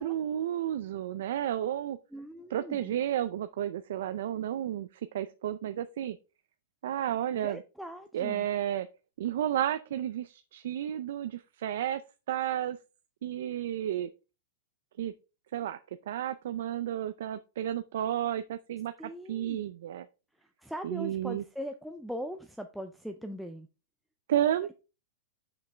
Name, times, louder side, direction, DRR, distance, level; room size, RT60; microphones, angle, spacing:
voice 1, 0.0-2.0 2.5-4.9 5.1-6.2 6.8-7.6 8.1-8.9 9.2-12.0 12.3-12.8 13.2-14.1 15.0-15.1 15.5-15.8 16.1-18.9 19.3-20.0 20.8-21.4 24.3-24.7, right 11 dB, 70° right, 0.4 m, -32 dB
voice 2, 2.1-2.9 7.3-8.5 19.0-19.6 20.4-23.7, equal, ahead, 0.3 m, -40 dB
6.0 x 5.2 x 3.4 m
supercardioid pair, 165°, 0 cm